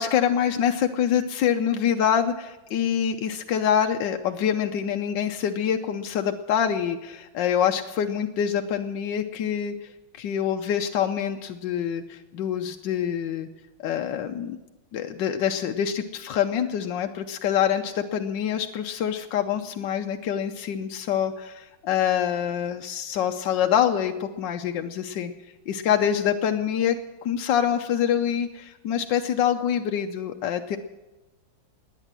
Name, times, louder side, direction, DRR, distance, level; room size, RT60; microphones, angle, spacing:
voice 1, 0.0-9.9 10.2-13.5 13.8-14.6 14.9-25.3 25.7-30.8, left 9 dB, 70° left, 5 dB, 1.3 m, -25 dB
19.0 x 9.9 x 7.5 m, 1.1 s
omnidirectional pair, 2.1 m